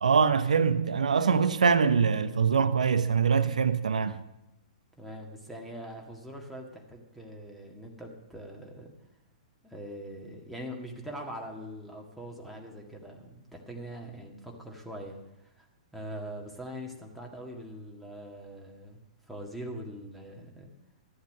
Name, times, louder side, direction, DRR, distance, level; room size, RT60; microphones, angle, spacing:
voice 1, 0.0-4.2, right 6 dB, 75° right, 0.7 m, -24 dB
voice 2, 5.0-8.9 9.6-15.7 15.9-19.0 19.3-20.7, equal, ahead, 1.8 m, -42 dB
13.0 x 7.9 x 6.5 m
figure-of-eight pair, 110°, 4 cm